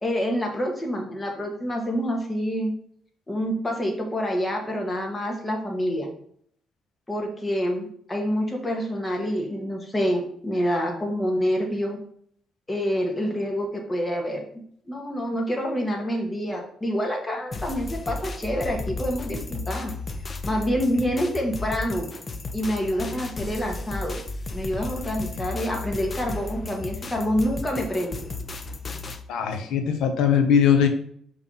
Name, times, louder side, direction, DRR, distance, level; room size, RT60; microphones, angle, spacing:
voice 1, 0.0-2.7 3.3-6.1 7.1-12.0 12.7-14.4 14.8-19.9 20.4-22.1 22.5-24.2 24.5-28.2, equal, 20° left, 1 dB, 1.6 m, -27 dB
sound 1, 17.5-29.2, left 3 dB, 35° left, 0.6 m, -34 dB
voice 2, 29.3-30.9, left 8 dB, 85° left, 6 dB, 0.9 m, -20 dB
5.7 x 3.3 x 5.5 m, 0.64 s
cardioid pair, 90°, 0 cm